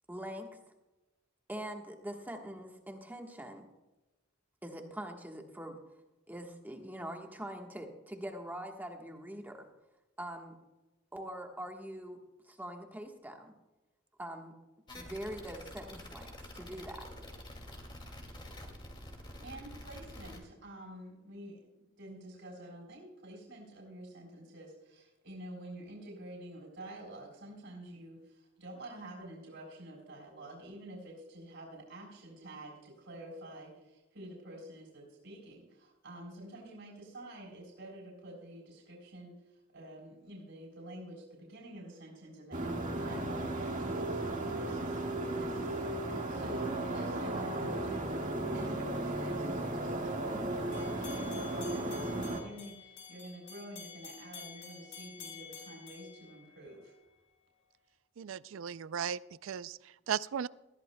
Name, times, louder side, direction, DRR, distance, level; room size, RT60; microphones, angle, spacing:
voice 1, 0.1-0.6 1.5-3.7 4.6-5.8 6.3-9.7 10.2-10.6 11.1-13.5 14.2-14.6 14.9-17.1, equal, 10° right, 3 dB, 1.3 m, -43 dB
sound 1, 14.9-20.4, left 1 dB, 25° left, 2.2 m, -47 dB
voice 2, 19.4-57.0, right 1 dB, 70° right, -2 dB, 3.9 m, -49 dB
sound 2, 42.5-52.4, right 1 dB, 45° right, 1.8 m, -35 dB
sound 3, 50.7-57.0, left 6 dB, 75° left, 4.7 m, -50 dB
voice 3, 58.2-60.5, right 8 dB, 85° right, 18 dB, 0.4 m, -37 dB
20.0 x 14.5 x 2.2 m, 1.0 s
head